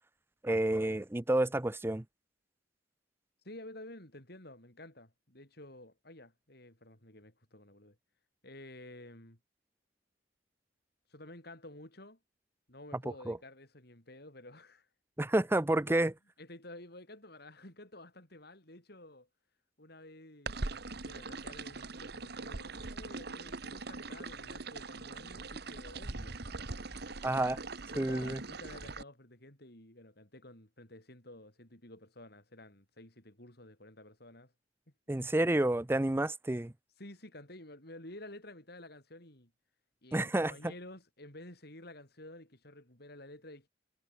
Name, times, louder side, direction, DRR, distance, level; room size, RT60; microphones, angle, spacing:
voice 1, 0.4-2.0 13.3-13.4 15.2-16.1 27.2-27.6 28.0-28.4 35.1-36.7 40.1-40.5, right 1 dB, 15° right, 0.5 m, -29 dB
voice 2, 3.4-8.0 8.4-9.4 11.1-12.2 12.7-14.9 15.9-16.0 16.4-19.3 19.8-20.6 21.0-26.4 27.9-34.5 37.0-39.5 40.0-43.7, left 1 dB, 60° left, 7.3 m, -51 dB
sound 1, 20.5-29.0, right 3 dB, 60° right, 1.6 m, -42 dB
head